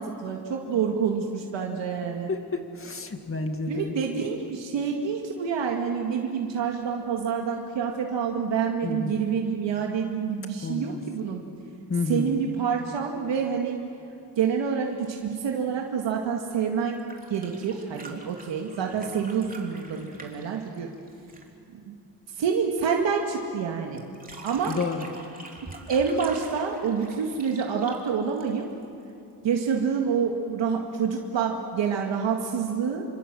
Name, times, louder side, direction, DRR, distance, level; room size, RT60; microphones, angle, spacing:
voice 1, 0.0-2.3 3.7-11.4 12.1-13.9 14.4-20.9 21.7-22.0 22.3-24.1 24.4-24.8 25.9-28.7 29.4-33.0, right 6 dB, 85° right, 0 dB, 2.3 m, -27 dB
voice 2, 2.3-4.0 8.8-9.1 10.6-11.0 11.9-12.3 24.7-25.1, left 4 dB, 30° left, 6 dB, 2.2 m, -30 dB
sound 1, 16.9-21.6 24.0-28.8 30.3-30.4, right 2 dB, 20° right, 3.5 m, -45 dB
27.5 x 25.5 x 7.8 m, 2.7 s
cardioid pair, 115°, 43 cm